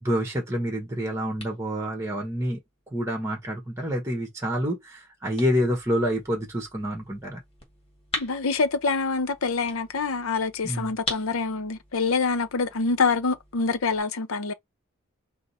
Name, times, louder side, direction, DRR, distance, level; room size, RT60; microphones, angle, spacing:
voice 1, 0.0-2.6 2.9-7.4 10.6-10.9, equal, 15° right, 1.1 m, -28 dB
sound 1, 0.5-14.0, left 2 dB, 25° left, 1.7 m, -43 dB
voice 2, 8.2-14.5, left 4 dB, 75° left, 0.7 m, -26 dB
4.9 x 2.1 x 4.1 m
head